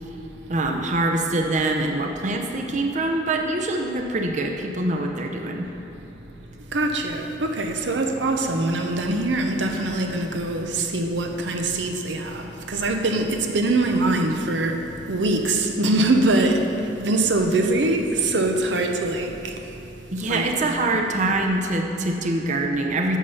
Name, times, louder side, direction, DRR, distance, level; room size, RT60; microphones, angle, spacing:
voice 1, 0.5-5.7 20.1-23.2, right 2 dB, 45° right, 2 dB, 0.7 m, -24 dB
voice 2, 6.7-16.7 17.0-19.7 20.2-21.0, right 2 dB, 85° right, 4 dB, 0.8 m, -23 dB
8.4 x 7.0 x 5.6 m, 2.9 s
head